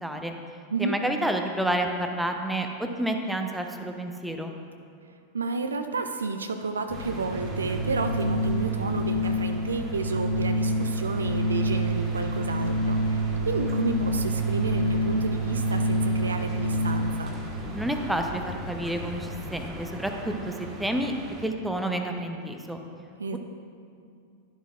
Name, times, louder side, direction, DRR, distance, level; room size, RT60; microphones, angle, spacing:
voice 1, 0.0-0.3 0.8-4.5 17.7-21.1 21.4-22.8, right 1 dB, 5° right, 4 dB, 0.7 m, -29 dB
voice 2, 5.3-17.4 23.2-23.4, right 4 dB, 75° right, 7 dB, 0.4 m, -31 dB
sound 1, 6.9-19.7, left 5 dB, 50° left, 0.6 m, -40 dB
sound 2, 6.9-21.4, right 1 dB, 30° right, 1.3 m, -41 dB
Organ, 7.0-17.3, equal, 80° left, 1.6 m, -27 dB
11.0 x 11.0 x 2.4 m, 2.4 s
figure-of-eight pair, 90°, 0 cm